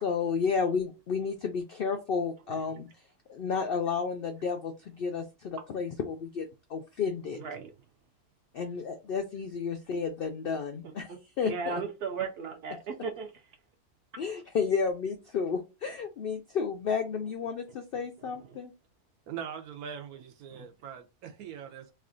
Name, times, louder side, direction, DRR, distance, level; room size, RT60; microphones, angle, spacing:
voice 1, 0.0-2.9 3.3-7.4 8.5-11.8 14.2-18.7, left 5 dB, 85° left, 0.5 m, -32 dB
voice 2, 7.3-7.7 10.8-13.3 18.5-18.6 20.5-20.6, right 5 dB, 60° right, 0.6 m, -36 dB
voice 3, 19.3-21.9, right 8 dB, 80° right, 1.2 m, -42 dB
3.2 x 2.4 x 3.7 m
omnidirectional pair, 1.5 m